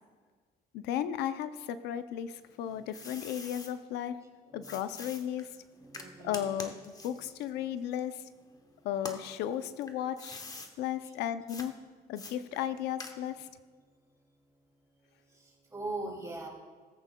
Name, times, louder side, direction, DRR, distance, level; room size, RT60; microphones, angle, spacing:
voice 1, 0.7-4.2 4.5-5.5 6.2-6.8 7.0-8.2 8.8-10.4 10.8-11.7 12.1-13.5, left 10 dB, 85° left, 12 dB, 0.5 m, -35 dB
sound 1, 2.3-3.7 4.6-8.5 8.9-10.7 11.5-11.7 12.2-13.5, left 3 dB, 20° left, 0.9 m, -46 dB
voice 2, 4.5-4.8 5.8-6.5 7.1-7.2 8.6-8.8 15.3-16.5, right 2 dB, 20° right, -2 dB, 2.6 m, -41 dB
17.5 x 8.1 x 2.2 m, 1.6 s
cardioid pair, 110°, 17 cm